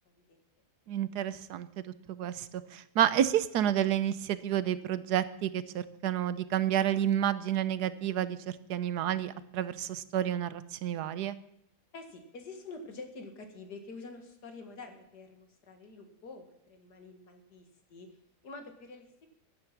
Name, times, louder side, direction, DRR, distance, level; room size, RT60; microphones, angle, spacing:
voice 1, 0.1-0.4 11.9-18.1 18.4-19.3, left 3 dB, 75° left, 6 dB, 2.5 m, -47 dB
voice 2, 0.9-1.7 2.1-11.4, right 10 dB, 75° right, 15 dB, 1.3 m, -30 dB
15.0 x 10.5 x 6.0 m, 0.77 s
omnidirectional pair, 1.8 m